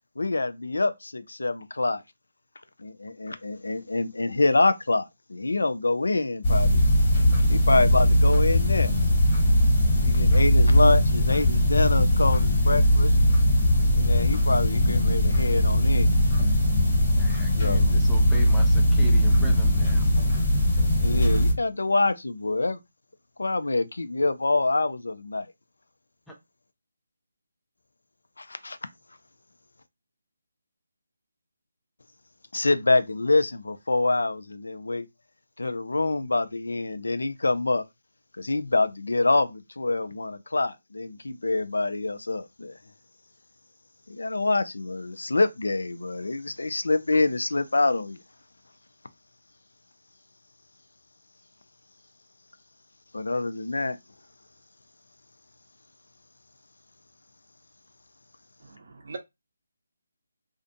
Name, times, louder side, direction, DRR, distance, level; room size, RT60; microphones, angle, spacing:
voice 1, 0.2-2.0 2.8-6.9 7.5-8.9 10.0-13.2 14.0-16.1 17.6-17.9 21.0-22.8 23.4-25.5 28.4-28.8 32.5-35.1 35.6-37.8 38.4-42.8 44.1-48.2 53.1-54.0, left 2 dB, 85° left, 0.3 m, -26 dB
sound 1, 6.4-21.5, left 1 dB, 30° left, 1.4 m, -20 dB
voice 2, 17.2-20.1 26.3-26.4, right 1 dB, ahead, 0.5 m, -39 dB
voice 3, 58.6-59.2, right 4 dB, 55° right, 0.7 m, -41 dB
2.4 x 2.2 x 2.5 m
figure-of-eight pair, 160°, 0 cm